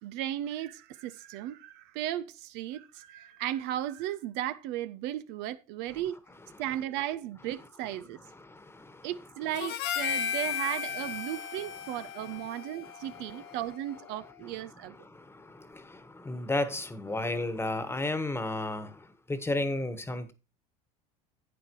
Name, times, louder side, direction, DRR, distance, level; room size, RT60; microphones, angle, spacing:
voice 1, 0.0-6.2 6.6-8.2 9.0-14.9, right 13 dB, 60° right, 0.6 m, -35 dB
voice 2, 8.3-9.1 12.8-13.4 15.0-20.3, left 2 dB, 10° left, 1.4 m, -34 dB
Harmonica, 9.5-14.0, left 8 dB, 55° left, 1.0 m, -35 dB
11.0 x 8.8 x 3.1 m
hypercardioid pair, 75°, 20 cm